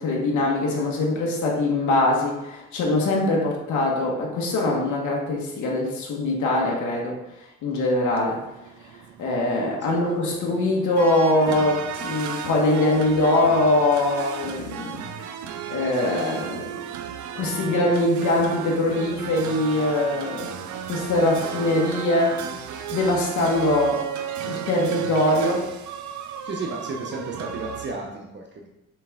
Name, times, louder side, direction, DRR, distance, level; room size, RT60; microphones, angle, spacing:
voice 1, 0.0-7.2 7.6-8.4 9.2-15.1 15.7-16.8 17.3-20.6 20.9-22.4 22.9-24.1 24.4-25.7, left 1 dB, 80° left, -2 dB, 1.3 m, -22 dB
sound 1, 8.1-27.9, right 8 dB, 75° right, 0.6 m, -34 dB
voice 2, 26.4-28.7, right 3 dB, 40° right, 1 dB, 0.8 m, -33 dB
6.0 x 4.6 x 3.6 m, 0.94 s
cardioid pair, 145°, 29 cm